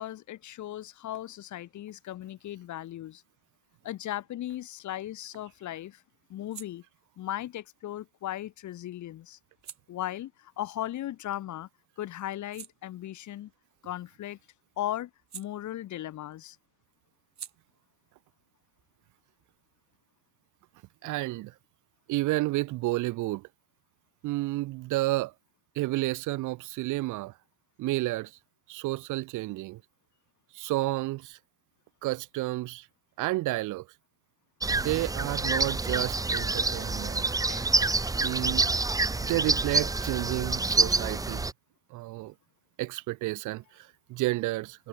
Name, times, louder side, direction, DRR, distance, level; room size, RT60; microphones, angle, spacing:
voice 1, 0.0-3.2 3.8-6.0 6.3-6.8 7.2-9.4 9.9-11.7 12.0-13.5 13.8-14.4 14.8-16.6 37.5-37.6, left 13 dB, 70° left, 1.4 m, -37 dB
sound 1, 4.7-11.6 12.0-16.3 16.5-19.9, right 10 dB, 65° right, 4.6 m, -53 dB
voice 2, 21.0-21.5 22.1-23.5 24.2-25.3 25.8-27.3 27.8-28.3 28.7-29.8 30.5-31.4 32.0-32.9 33.2-33.9 34.7-37.4 38.2-38.7 39.2-41.5 41.9-42.3 42.8-44.9, right 19 dB, 80° right, 0.5 m, -31 dB
sound 2, 34.6-41.5, right 3 dB, 10° right, 0.6 m, -27 dB
cardioid pair, 90°, 30 cm